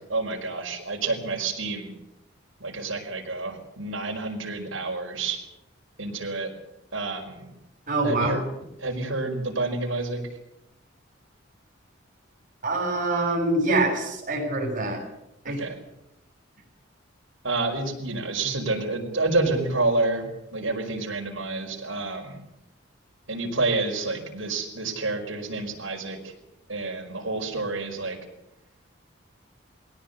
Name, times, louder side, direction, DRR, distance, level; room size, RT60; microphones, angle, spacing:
voice 1, 0.0-1.9 2.6-5.4 6.0-6.5 6.9-7.5 8.0-8.4 8.8-10.2 15.5-15.8 17.4-22.4 23.3-26.4 26.7-28.2, right 3 dB, 80° right, 1 dB, 5.1 m, -29 dB
voice 2, 7.9-8.4 12.6-15.0 15.4-15.6, right 2 dB, 40° right, 0 dB, 7.5 m, -25 dB
21.5 x 17.5 x 8.2 m, 0.89 s
head